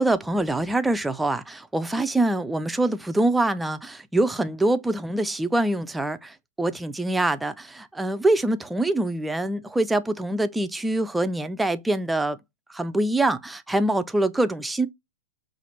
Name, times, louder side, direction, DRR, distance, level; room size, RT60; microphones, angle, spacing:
voice 1, 0.0-12.4 12.7-14.9, right 2 dB, 5° right, 0.3 m, -24 dB
5.6 x 2.5 x 2.7 m
hypercardioid pair, 115°, 0 cm